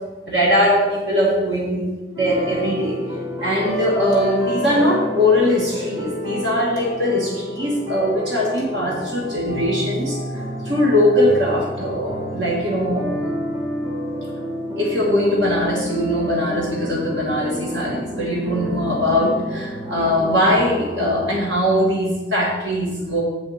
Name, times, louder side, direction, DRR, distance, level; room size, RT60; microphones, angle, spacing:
voice 1, 0.3-1.9 2.2-3.0 3.4-13.3 14.8-23.2, left 1 dB, 70° right, -4 dB, 1.9 m, -21 dB
sound 1, 2.2-21.4, equal, 30° right, 2.7 m, -29 dB
7.6 x 5.1 x 6.4 m, 1.2 s
head